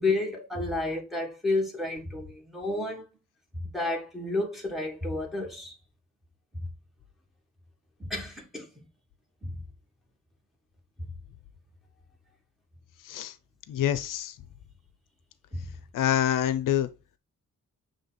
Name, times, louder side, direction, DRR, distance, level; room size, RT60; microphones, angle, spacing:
voice 1, 0.0-3.1 3.5-5.7 6.5-6.7 8.0-8.7 9.4-9.6 11.0-11.1 15.5-15.7, left 2 dB, ahead, 1.7 m, -31 dB
voice 2, 13.7-14.3 15.9-16.9, left 10 dB, 85° left, 0.7 m, -26 dB
7.0 x 3.5 x 4.0 m
wide cardioid pair, 155°, 31 cm